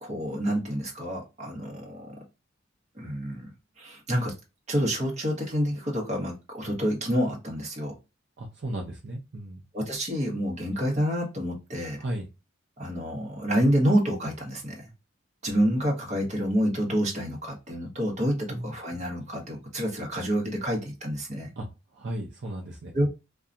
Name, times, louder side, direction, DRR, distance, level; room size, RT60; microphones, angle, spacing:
voice 1, 0.0-2.2 2.9-3.5 3.8-4.3 4.7-8.0 9.7-12.0 12.8-14.9 15.4-21.5 22.9-23.1, equal, 35° right, 0 dB, 1.0 m, -28 dB
voice 2, 8.4-9.6 12.0-12.3 18.5-18.7 21.6-21.7 21.9-23.1, right 1 dB, 60° right, 0 dB, 0.6 m, -35 dB
2.7 x 2.3 x 2.4 m, 0.27 s
head